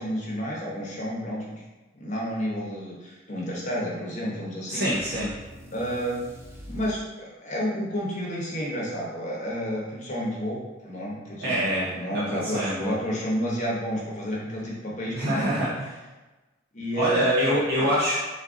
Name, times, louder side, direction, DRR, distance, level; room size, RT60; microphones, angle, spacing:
voice 1, 0.0-1.6 2.0-4.9 5.7-6.2 6.7-15.6 16.7-17.5 17.8-17.9, equal, 40° left, -4 dB, 0.9 m, -30 dB
voice 2, 4.7-5.3 11.4-12.9 15.1-15.9 17.0-18.2, equal, 55° right, -7 dB, 0.7 m, -25 dB
sound 1, 4.9-7.0, equal, 15° right, 0.5 m, -44 dB
3.9 x 2.5 x 3.6 m, 1.2 s
head